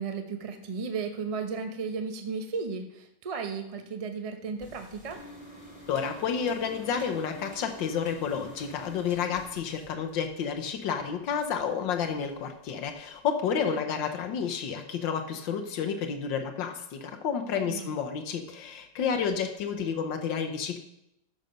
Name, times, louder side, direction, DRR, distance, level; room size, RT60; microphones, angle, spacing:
voice 1, 0.0-5.2 13.7-13.8 17.5-17.9, right 5 dB, 35° right, 5 dB, 0.5 m, -34 dB
sound 1, 4.6-10.5 10.9-11.7 12.0-12.3 12.8-12.9 13.2-13.3, equal, 20° left, 2.6 m, -48 dB
voice 2, 5.9-20.8, left 7 dB, 85° left, 5 dB, 1.6 m, -30 dB
13.0 x 6.7 x 5.2 m, 0.83 s
omnidirectional pair, 2.0 m